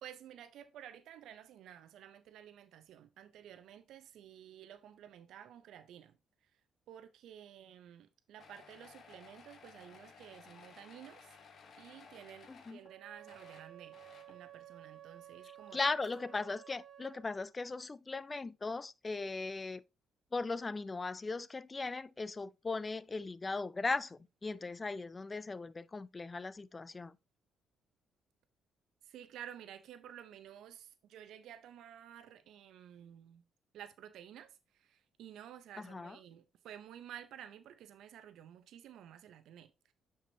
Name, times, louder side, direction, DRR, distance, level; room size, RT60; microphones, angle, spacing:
voice 1, 0.0-6.2 6.9-11.4 11.8-14.0 14.3-16.0 29.0-33.4 33.7-39.9, right 10 dB, 80° right, 0.5 m, -52 dB
sound 1, 8.4-12.9 13.2-14.4 15.7-15.8 16.0-16.2, left 5 dB, 55° left, 1.2 m, -57 dB
Wind instrument woodwind instrument, 12.8-17.3, right 11 dB, 50° right, 0.8 m, -54 dB
voice 2, 15.7-19.8 20.3-27.1 35.9-36.2, left 3 dB, 25° left, 0.4 m, -38 dB
8.8 x 4.7 x 2.7 m
cardioid pair, 90°, 0 cm